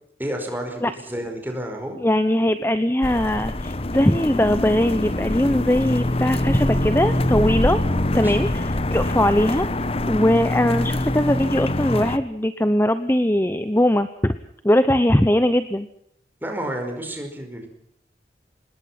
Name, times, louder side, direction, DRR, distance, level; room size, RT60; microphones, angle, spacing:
voice 1, 0.2-2.0 8.1-8.5 16.4-17.7, right 1 dB, 10° right, 4 dB, 5.2 m, -30 dB
voice 2, 2.0-7.8 8.1-9.7 10.1-14.4 14.6-15.9, left 1 dB, 15° left, 11 dB, 0.8 m, -20 dB
sound 1, 3.0-12.2, left 1 dB, 35° left, 1.0 m, -24 dB
25.5 x 20.5 x 5.9 m, 0.72 s
head